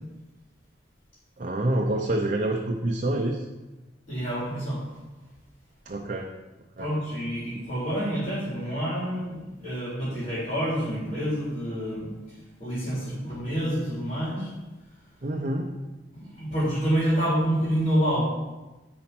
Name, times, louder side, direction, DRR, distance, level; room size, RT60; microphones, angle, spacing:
voice 1, 1.4-3.5 5.9-6.3 6.8-6.9 15.2-15.7, right 1 dB, 45° right, 2 dB, 0.6 m, -27 dB
voice 2, 4.1-4.8 6.8-14.5 16.1-18.2, equal, 40° left, -9 dB, 3.3 m, -28 dB
10.5 x 4.3 x 6.0 m, 1.1 s
head